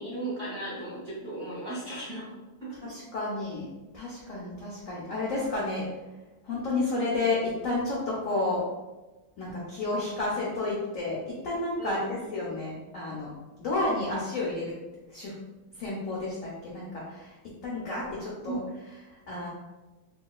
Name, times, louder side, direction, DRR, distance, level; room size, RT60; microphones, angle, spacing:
voice 1, 0.0-2.3 2.6-2.8 11.8-12.1 18.4-18.7, right 2 dB, 50° right, -8 dB, 0.9 m, -36 dB
voice 2, 2.8-3.7 3.9-6.0 6.4-8.6 9.4-13.3 13.6-14.8 15.1-15.3 15.7-17.4 17.6-18.6 19.0-19.5, left 2 dB, 85° left, -5 dB, 0.7 m, -31 dB
3.8 x 2.4 x 2.2 m, 1.1 s
omnidirectional pair, 2.2 m